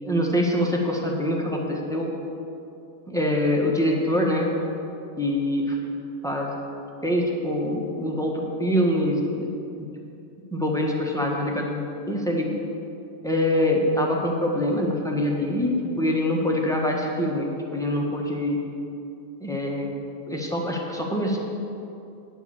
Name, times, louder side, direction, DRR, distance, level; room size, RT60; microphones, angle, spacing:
voice 1, 0.0-2.1 3.1-4.5 5.2-5.8 6.2-6.5 7.0-9.5 10.5-12.5 13.2-18.6 19.4-19.9 20.3-21.4, left 1 dB, 5° left, -1 dB, 1.3 m, -24 dB
9.8 x 8.3 x 7.0 m, 2.7 s
omnidirectional pair, 1.2 m